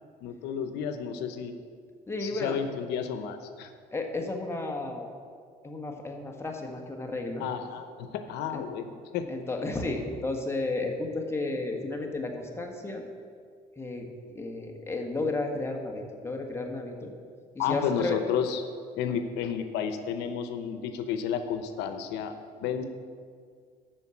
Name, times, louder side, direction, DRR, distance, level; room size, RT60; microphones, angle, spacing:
voice 1, 0.2-1.6 2.2-3.7 7.4-9.3 17.6-18.6 18.9-22.3 22.6-22.8, left 8 dB, 90° left, 8 dB, 0.7 m, -32 dB
voice 2, 2.1-2.6 3.9-5.1 5.6-7.5 8.5-8.6 9.3-13.0 13.8-14.1 14.3-17.1 17.5-18.2 19.0-19.2, left 2 dB, 15° left, 2 dB, 1.6 m, -33 dB
13.0 x 4.5 x 8.4 m, 2.1 s
cardioid pair, 110°, 17 cm